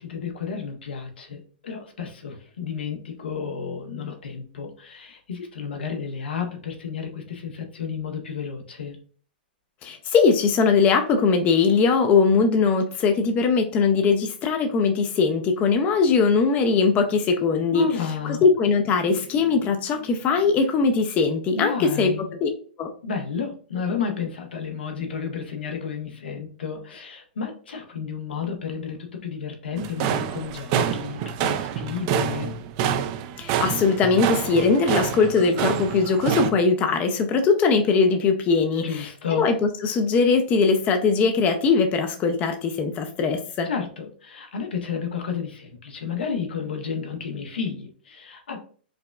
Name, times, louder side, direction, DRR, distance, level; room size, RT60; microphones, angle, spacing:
voice 1, 0.0-9.0 17.7-18.4 21.5-22.3 23.0-32.5 38.8-39.5 43.6-48.6, left 6 dB, 85° left, 4 dB, 0.9 m, -31 dB
voice 2, 9.8-17.9 18.4-22.1 22.4-22.5 22.8-22.9 33.4-39.5 39.8-43.7, left 5 dB, 25° left, 6 dB, 0.4 m, -20 dB
sound 1, 29.8-36.5, right 9 dB, 40° right, 0.3 m, -27 dB
4.7 x 2.2 x 2.3 m, 0.43 s
hypercardioid pair, 130°, 5 cm